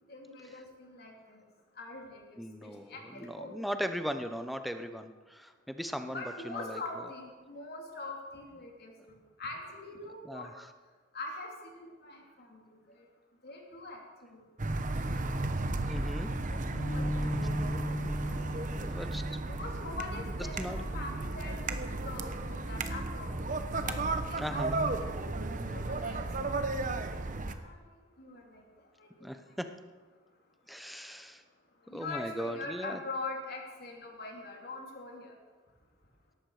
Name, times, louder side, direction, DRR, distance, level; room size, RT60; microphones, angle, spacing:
voice 1, 0.1-1.4 1.8-2.2 2.6-3.5 6.1-10.5 11.1-12.8 13.4-14.0 14.3-14.4 16.5-17.6 18.2-18.7 19.5-23.3 23.8-24.0 24.3-24.6 24.9-25.3 25.7-27.8 28.2-28.6 29.0-29.3 31.9-35.3, left 2 dB, 50° left, 1 dB, 3.2 m, -43 dB
voice 2, 2.4-6.8 9.0-9.1 10.2-10.7 15.9-16.3 18.8-19.4 20.6-20.8 24.4-24.8 29.2-29.7 30.7-31.4 31.9-33.0, equal, ahead, 8 dB, 0.9 m, -38 dB
sound 1, 14.6-27.5, right 2 dB, 40° right, 1.0 m, -34 dB
sound 2, 16.7-23.2, equal, 75° left, 6.0 m, -39 dB
18.0 x 14.0 x 5.0 m, 1.3 s
head